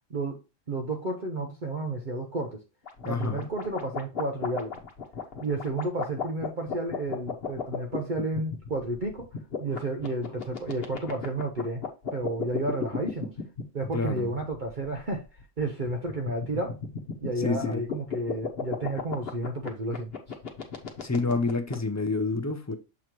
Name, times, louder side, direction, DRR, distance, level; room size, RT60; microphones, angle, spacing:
voice 1, 0.1-0.4 0.7-2.6 3.1-4.8 5.4-9.3 9.6-11.8 12.1-13.3 13.7-15.2 15.6-16.8 17.2-20.1, right 2 dB, 45° right, 0.8 m, -31 dB
sound 1, 2.9-21.7, left 6 dB, 50° left, 1.2 m, -35 dB
voice 2, 3.0-3.5 13.9-14.3 17.4-17.8 21.0-22.7, left 3 dB, 25° left, 0.4 m, -28 dB
7.2 x 3.2 x 4.4 m
omnidirectional pair, 1.4 m